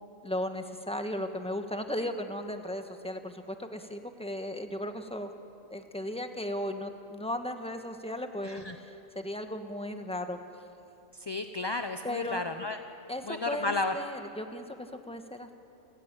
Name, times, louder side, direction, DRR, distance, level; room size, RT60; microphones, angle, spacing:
voice 1, 0.2-5.3 5.7-10.4 12.0-12.4 13.1-15.6, left 1 dB, 5° left, 6 dB, 1.2 m, -36 dB
voice 2, 11.3-12.8 13.3-13.9, left 3 dB, 25° left, 7 dB, 0.5 m, -32 dB
28.5 x 15.5 x 8.9 m, 2.8 s
omnidirectional pair, 1.4 m